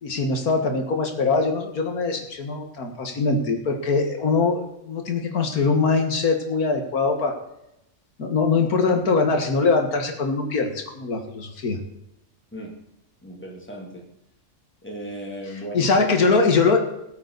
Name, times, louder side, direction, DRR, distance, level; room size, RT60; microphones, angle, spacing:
voice 1, 0.0-7.4 8.2-11.8 15.7-16.8, left 4 dB, 85° left, 4 dB, 2.2 m, -22 dB
voice 2, 13.2-14.1 14.8-16.1, right 1 dB, 10° left, -1 dB, 2.9 m, -36 dB
19.5 x 8.8 x 4.1 m, 0.85 s
omnidirectional pair, 1.5 m